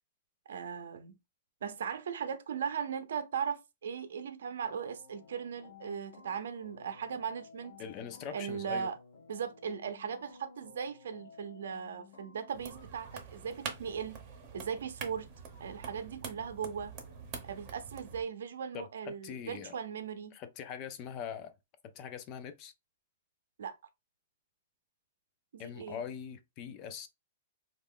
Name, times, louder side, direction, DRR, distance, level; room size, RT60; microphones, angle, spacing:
voice 1, 0.5-1.1 1.6-7.8 8.3-9.0 9.3-14.2 14.5-15.3 15.6-16.9 17.4-20.4 23.6-23.8 25.5-26.0, right 7 dB, 80° right, 0.6 m, -38 dB
sound 1, 4.6-12.8, left 5 dB, 65° left, 0.8 m, -56 dB
voice 2, 7.8-8.9 18.7-19.8 20.3-21.5 21.8-22.7 25.6-27.1, left 7 dB, 30° left, 0.4 m, -42 dB
sound 2, 12.5-18.2, right 6 dB, 25° right, 0.7 m, -46 dB
2.9 x 2.5 x 3.7 m
hypercardioid pair, 165°, 0 cm